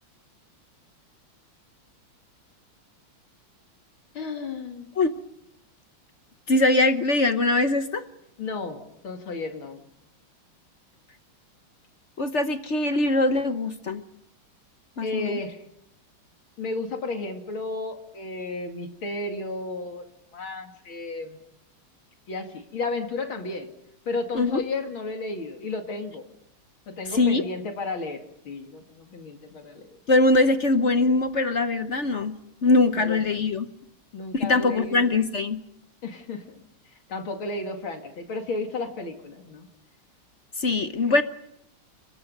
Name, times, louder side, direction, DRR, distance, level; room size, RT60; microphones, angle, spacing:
voice 1, 4.1-4.9 8.4-9.8 15.0-15.6 16.6-20.0 20.3-21.4 22.3-23.7 24.1-26.2 26.9-30.0 32.9-33.2 34.1-35.0 36.0-36.4 37.1-39.7, left 3 dB, 70° left, 4 dB, 3.0 m, -33 dB
voice 2, 6.5-8.0 12.2-14.0 15.0-15.4 24.3-24.6 27.1-27.4 30.1-32.3 32.6-33.7 34.3-35.6 40.6-41.2, left 2 dB, 45° left, 9 dB, 1.0 m, -22 dB
29.5 x 22.0 x 5.4 m, 0.79 s
omnidirectional pair, 2.3 m